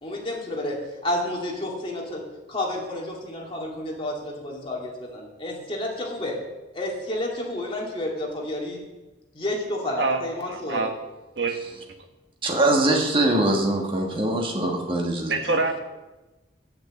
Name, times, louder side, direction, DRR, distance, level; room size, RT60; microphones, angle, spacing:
voice 1, 0.0-2.2 2.5-6.4 6.7-8.8 9.3-10.9, left 1 dB, 30° left, -2 dB, 2.1 m, -30 dB
voice 2, 10.5-10.9 11.4-11.6 15.3-15.8, right 3 dB, 65° right, 5 dB, 1.2 m, -25 dB
voice 3, 12.4-15.3, right 2 dB, 30° right, 1 dB, 1.4 m, -22 dB
8.3 x 6.9 x 7.6 m, 1.1 s
head